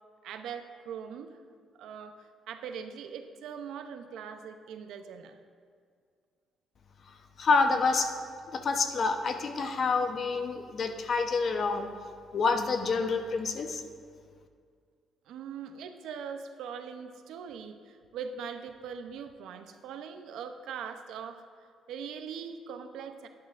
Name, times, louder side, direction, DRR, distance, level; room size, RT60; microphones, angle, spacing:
voice 1, 0.2-1.4 1.8-5.4 15.3-21.4 21.9-23.3, right 7 dB, 85° right, 7 dB, 0.6 m, -41 dB
voice 2, 7.1-8.1 8.5-11.9 12.3-13.8, left 4 dB, 55° left, 6 dB, 0.8 m, -28 dB
11.5 x 10.5 x 2.5 m, 2.1 s
cardioid pair, 90°, 0 cm